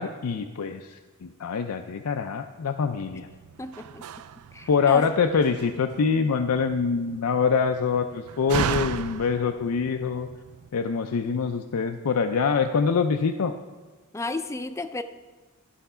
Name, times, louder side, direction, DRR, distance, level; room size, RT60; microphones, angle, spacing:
voice 1, 0.0-3.3 4.7-10.3 10.7-13.5, left 5 dB, 80° left, 6 dB, 0.5 m, -25 dB
Slam, 3.1-10.7, right 8 dB, 90° right, 0.4 m, -36 dB
voice 2, 3.6-4.0 4.5-5.0 14.1-15.0, left 2 dB, 15° left, 10 dB, 0.4 m, -32 dB
13.0 x 5.8 x 5.5 m, 1.3 s
head